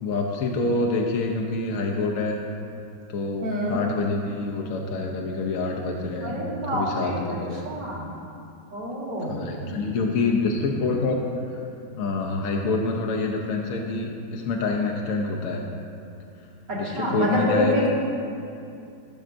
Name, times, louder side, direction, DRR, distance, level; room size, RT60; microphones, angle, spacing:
voice 1, 0.0-2.4 3.1-7.6 9.3-11.2 12.0-15.7 16.8-17.9, left 3 dB, 60° left, 0 dB, 0.9 m, -26 dB
voice 2, 3.4-3.8 6.2-7.2 7.6-8.1 8.7-9.5 16.7-17.9, equal, 75° right, -7 dB, 2.7 m, -27 dB
16.0 x 6.2 x 2.6 m, 2.6 s
omnidirectional pair, 1.9 m